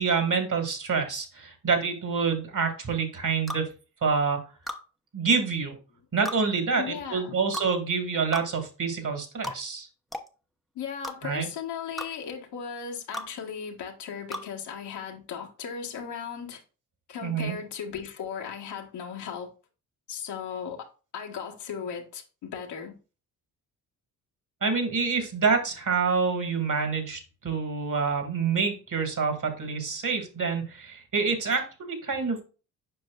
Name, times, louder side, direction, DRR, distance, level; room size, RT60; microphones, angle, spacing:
voice 1, 0.0-3.7 4.0-4.4 5.1-5.8 6.1-9.9 11.2-11.5 17.2-17.6 24.6-32.4, right 5 dB, 45° right, 2.2 m, -27 dB
sound 1, 3.5-3.7 4.7-4.8 6.3-6.4 7.5-7.7 8.3-8.5 9.4-9.6 10.1-10.3 11.0-11.2 12.0-12.1 13.1-13.3 14.3-14.5, equal, ahead, 0.8 m, -35 dB
voice 2, 6.8-7.4 10.7-16.6 17.1-19.5 20.1-20.9 21.1-23.0, left 7 dB, 70° left, 1.5 m, -36 dB
7.7 x 5.4 x 2.4 m
hypercardioid pair, 50°, 43 cm